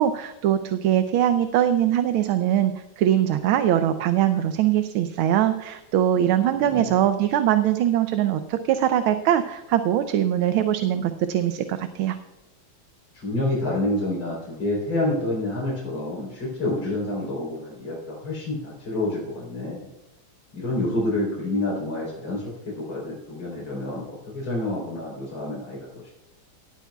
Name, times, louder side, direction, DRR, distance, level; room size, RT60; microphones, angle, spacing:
voice 1, 0.0-12.2, right 11 dB, 90° right, 9 dB, 1.5 m, -22 dB
voice 2, 6.5-6.9 13.1-19.9 20.5-26.1, left 1 dB, 85° left, -4 dB, 4.5 m, -28 dB
18.5 x 12.5 x 2.3 m, 0.99 s
omnidirectional pair, 2.2 m